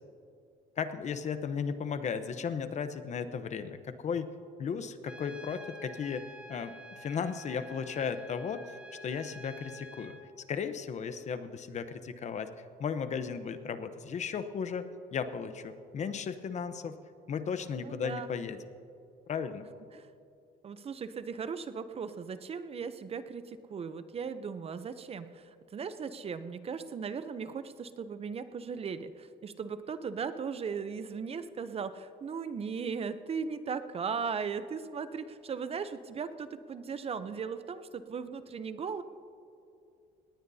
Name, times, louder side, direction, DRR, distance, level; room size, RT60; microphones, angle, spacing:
voice 1, 0.8-4.3 4.6-8.6 9.0-10.2 10.5-12.5 12.8-17.0 17.3-18.6 19.3-19.6, left 6 dB, 45° left, 10 dB, 0.9 m, -35 dB
Trumpet, 5.1-10.3, equal, 5° right, 1.5 m, -49 dB
voice 2, 17.8-18.4 19.9-20.1 20.6-39.0, right 6 dB, 35° right, 12 dB, 0.6 m, -37 dB
19.5 x 18.5 x 2.8 m, 2.5 s
cardioid pair, 110°, 17 cm